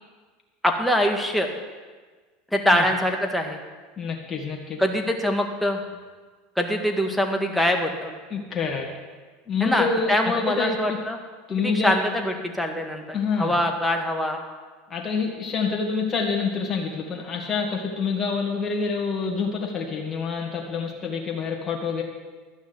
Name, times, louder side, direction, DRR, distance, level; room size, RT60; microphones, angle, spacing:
voice 1, 0.6-1.5 2.5-3.6 4.8-5.8 6.6-8.1 9.6-11.2 11.6-14.4, equal, ahead, 2 dB, 1.7 m, -24 dB
voice 2, 4.0-4.8 8.3-8.9 9.5-10.1 10.6-10.8 11.5-11.9 13.1-13.5 14.9-22.0, left 5 dB, 30° left, -2 dB, 2.2 m, -27 dB
12.0 x 6.1 x 8.2 m, 1.4 s
hypercardioid pair, 95°, 0 cm